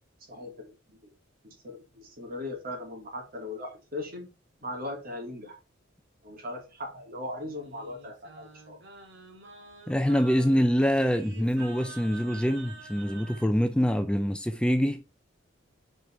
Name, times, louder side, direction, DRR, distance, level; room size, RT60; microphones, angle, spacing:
voice 1, 0.3-0.7 1.0-1.1 1.4-4.3 4.6-5.5 6.2-8.8 11.4-11.5, left 1 dB, 50° right, 3.1 m, -39 dB
Singing, 7.4-13.5, right 3 dB, 65° right, 2.0 m, -48 dB
voice 2, 9.9-15.0, equal, 5° left, 0.4 m, -25 dB
5.6 x 5.1 x 5.6 m
head